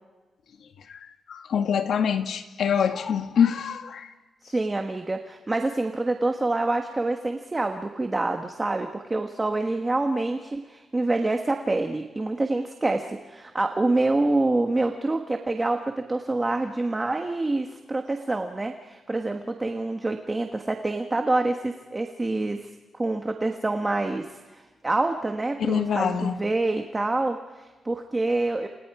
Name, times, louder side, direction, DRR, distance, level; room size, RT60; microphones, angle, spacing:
voice 1, 1.3-4.1 25.6-26.4, left 7 dB, 65° left, 1.8 m, -24 dB
voice 2, 4.5-22.7 23.0-28.7, right 2 dB, 15° right, 1.4 m, -26 dB
29.5 x 28.0 x 4.9 m
wide cardioid pair, 160°, 0 cm